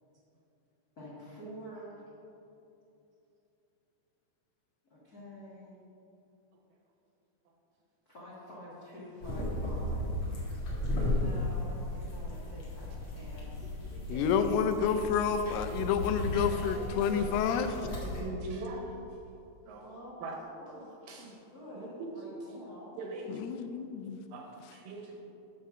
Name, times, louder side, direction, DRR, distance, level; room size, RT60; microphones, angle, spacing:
voice 1, 1.0-2.0 4.9-5.8 8.1-10.3 11.1-13.7 16.3-18.3 19.8-20.3 20.6-23.0, left 1 dB, 65° left, -7 dB, 0.9 m, -48 dB
sound 1, 9.2-18.2, left 1 dB, 45° left, 2.0 m, -35 dB
voice 2, 10.7-11.1 13.9-14.3 17.2-17.3 17.8-18.9 19.7-19.8 20.2-20.4 21.1-21.3 21.8-22.1 23.0-23.3 24.3-25.2, right 3 dB, 70° right, 1 dB, 2.3 m, -42 dB
voice 3, 14.1-17.7 23.3-24.2, left 7 dB, 90° left, 8 dB, 2.6 m, -29 dB
12.5 x 4.3 x 6.0 m, 2.8 s
omnidirectional pair, 4.5 m